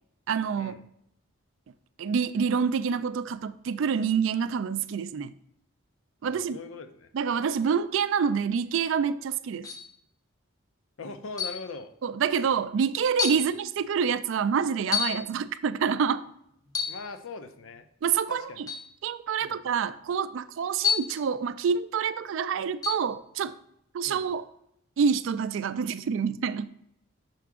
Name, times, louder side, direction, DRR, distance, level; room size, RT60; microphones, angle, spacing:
voice 1, 0.3-0.8 2.0-5.3 6.2-6.6 7.1-9.7 12.0-16.2 18.0-18.7 19.0-23.5 23.9-24.4 25.0-26.7, right 6 dB, 70° right, 0.3 m, -27 dB
voice 2, 6.2-7.1 11.0-11.9 13.3-13.5 16.9-17.9 18.3-18.6 19.4-19.6 24.0-24.2, left 3 dB, 75° left, 0.5 m, -41 dB
sound 1, 9.6-9.9 11.4-11.7 12.5-12.6 13.2-13.5 14.9-15.3 16.7-17.1 18.7-18.9 20.8-21.2 22.8-23.1, left 7 dB, 15° left, 0.5 m, -29 dB
5.8 x 4.7 x 3.5 m
head